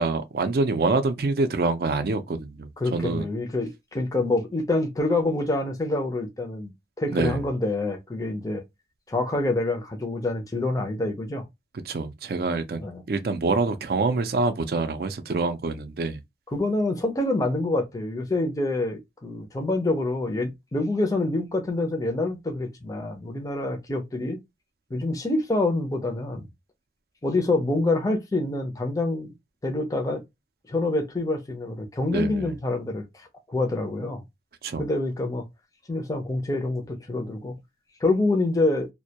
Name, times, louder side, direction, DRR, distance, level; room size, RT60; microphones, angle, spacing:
voice 1, 0.0-3.2 7.1-7.4 11.9-16.2 32.1-32.6 34.6-34.8, right 3 dB, 55° right, 0.4 m, -26 dB
voice 2, 2.8-6.7 7.0-8.6 9.1-11.5 12.8-13.0 16.5-24.4 24.9-26.5 27.2-29.3 29.6-30.2 30.7-34.2 34.8-35.4 35.9-37.6 38.0-38.9, left 2 dB, 20° left, 0.4 m, -26 dB
2.2 x 2.1 x 2.7 m
head